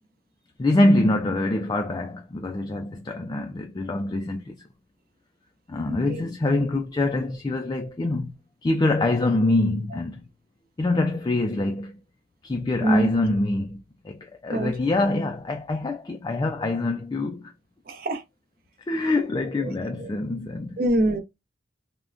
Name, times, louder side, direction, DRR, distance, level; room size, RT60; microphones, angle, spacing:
voice 1, 0.6-4.6 5.7-8.4 8.6-10.2 10.8-12.0 12.4-17.5 18.9-20.8, left 2 dB, 25° left, 0.3 m, -25 dB
voice 2, 5.9-6.2 12.8-13.1 14.5-14.7 17.9-18.2 19.6-19.7 20.0-20.1 20.8-21.2, right 1 dB, 55° right, 0.7 m, -24 dB
3.5 x 2.1 x 2.5 m
head